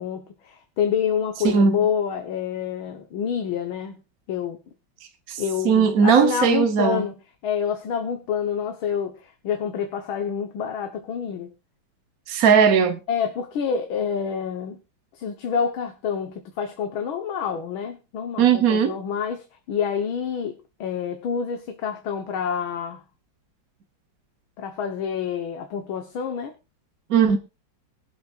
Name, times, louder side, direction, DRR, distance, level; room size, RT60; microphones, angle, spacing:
voice 1, 0.0-4.0 4.3-4.6 5.4-11.5 13.1-14.8 15.1-23.0 24.6-26.5, left 7 dB, 90° left, 2.0 m, -28 dB
voice 2, 1.4-1.9 5.3-7.0 12.3-13.0 18.4-18.9 27.1-27.4, right 6 dB, 55° right, 1.2 m, -18 dB
23.5 x 7.9 x 2.5 m
omnidirectional pair, 2.2 m